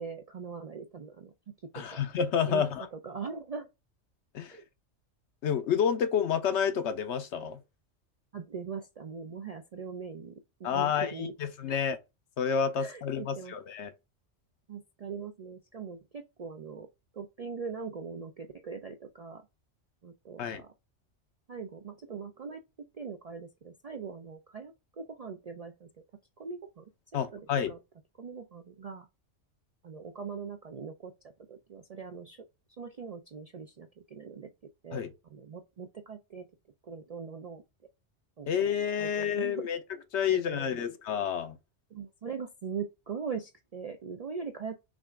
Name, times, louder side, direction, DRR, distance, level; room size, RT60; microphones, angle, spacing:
voice 1, 0.0-1.3 1.7-2.0 2.5-3.7 4.5-4.6 8.3-10.3 10.6-11.3 11.7-11.8 12.8-13.6 14.7-16.9 17.1-19.5 20.0-20.7 21.5-25.9 26.4-26.9 27.3-27.8 28.2-29.1 29.8-31.1 31.5-32.5 32.8-35.0 35.3-36.5 36.8-37.6 38.4-38.5 39.0-39.7 40.3-40.9 41.9-44.8, right 5 dB, 55° right, 0.4 m, -41 dB
voice 2, 1.7-2.9 4.3-4.6 5.4-7.6 10.6-12.0 12.4-13.9 20.4-20.6 27.1-27.7 34.9-35.1 38.5-39.8 40.1-41.6, left 7 dB, 70° left, 1.0 m, -29 dB
6.0 x 2.4 x 3.4 m
omnidirectional pair, 1.2 m